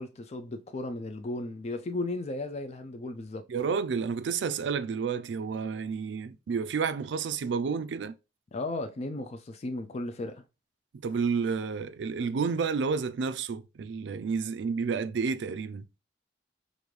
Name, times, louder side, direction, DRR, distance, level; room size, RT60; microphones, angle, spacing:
voice 1, 0.0-3.4 8.5-10.4, left 2 dB, 35° left, 0.4 m, -35 dB
voice 2, 3.5-8.2 11.0-15.9, right 5 dB, 70° right, 0.4 m, -30 dB
5.0 x 2.6 x 3.1 m
head